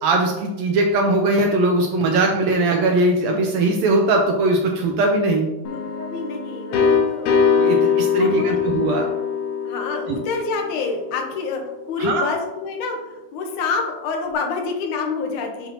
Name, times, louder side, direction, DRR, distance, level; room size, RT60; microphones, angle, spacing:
voice 1, 0.0-5.5 7.6-9.1 10.1-10.2 12.0-12.3, right 2 dB, 75° right, 2 dB, 1.7 m, -20 dB
sound 1, 5.6-11.3, left 6 dB, 65° left, 1.8 m, -22 dB
voice 2, 5.7-7.4 8.2-8.6 9.6-15.7, left 4 dB, 90° left, 2 dB, 2.4 m, -27 dB
7.2 x 5.3 x 2.8 m, 1.1 s
omnidirectional pair, 3.4 m